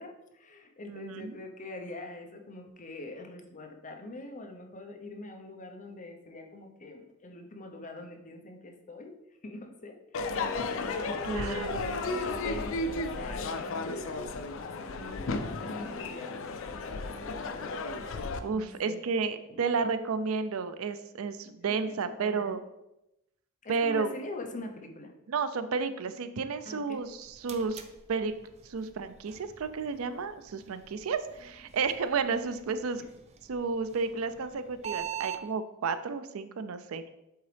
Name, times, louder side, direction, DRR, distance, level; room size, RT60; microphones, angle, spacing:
voice 1, 0.0-9.2 9.4-11.5 11.8-17.4 18.5-19.0 19.5-19.8 21.7-22.6 23.6-25.1 26.6-27.0 32.3-32.5, left 2 dB, 40° left, 4 dB, 0.8 m, -44 dB
voice 2, 0.9-1.4 11.2-12.0 18.4-22.6 23.7-24.1 25.3-27.8 28.1-28.3 28.7-33.0 33.5-37.1, right 5 dB, 85° right, 11 dB, 0.5 m, -32 dB
Crowd / Fireworks, 10.1-18.4, left 3 dB, 70° left, 0.5 m, -34 dB
sound 1, 26.9-35.4, right 9 dB, 30° right, 0.5 m, -45 dB
7.9 x 3.9 x 3.3 m, 0.89 s
head